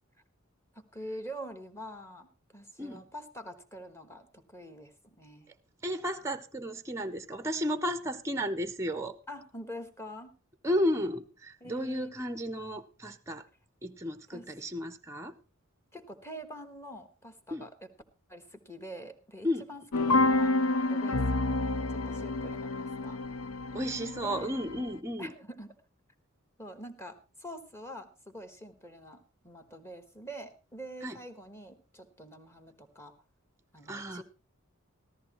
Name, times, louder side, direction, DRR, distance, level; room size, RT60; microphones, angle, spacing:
voice 1, 0.7-5.5 8.4-8.5 9.3-10.3 11.6-12.1 14.3-14.4 15.9-17.7 18.3-23.2 24.2-24.5 25.2-25.7 26.6-33.1 33.7-34.2, equal, 10° left, 1.2 m, -45 dB
voice 2, 5.8-9.2 10.6-13.5 13.8-15.3 17.5-17.7 19.4-19.7 23.7-25.3 31.0-31.2 33.9-34.2, equal, 15° right, 0.6 m, -33 dB
sound 1, 19.9-24.9, left 2 dB, 80° left, 0.6 m, -29 dB
14.0 x 13.5 x 3.0 m
head